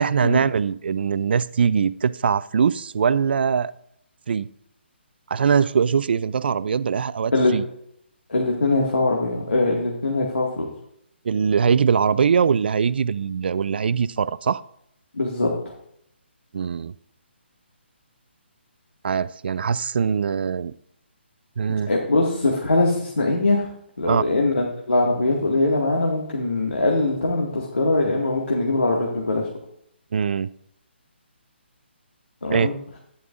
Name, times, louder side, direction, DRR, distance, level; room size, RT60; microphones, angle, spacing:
voice 1, 0.0-3.7 4.3-4.5 5.3-7.6 11.2-14.6 16.5-16.9 19.0-20.7 21.6-21.9 24.1-24.2 30.1-30.5 32.5-32.7, right 6 dB, 60° right, 18 dB, 0.4 m, -22 dB
voice 2, 8.3-10.7 15.1-15.7 21.9-23.7 24.0-29.5 32.4-32.7, left 2 dB, 80° left, -2 dB, 1.9 m, -22 dB
11.0 x 10.5 x 2.5 m, 0.72 s
figure-of-eight pair, 145°, 6 cm